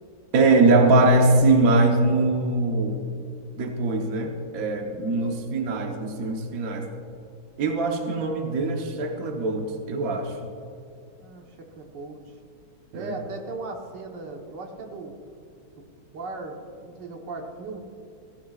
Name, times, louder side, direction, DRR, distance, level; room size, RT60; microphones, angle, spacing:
voice 1, 0.3-3.0 3.6-6.9 7.6-10.5 12.9-13.1, right 2 dB, 55° right, 3 dB, 1.5 m, -22 dB
voice 2, 11.2-12.2 12.9-15.2 16.1-17.8, right 3 dB, 85° right, 2 dB, 1.9 m, -37 dB
16.0 x 16.0 x 2.4 m, 2.6 s
omnidirectional pair, 1.9 m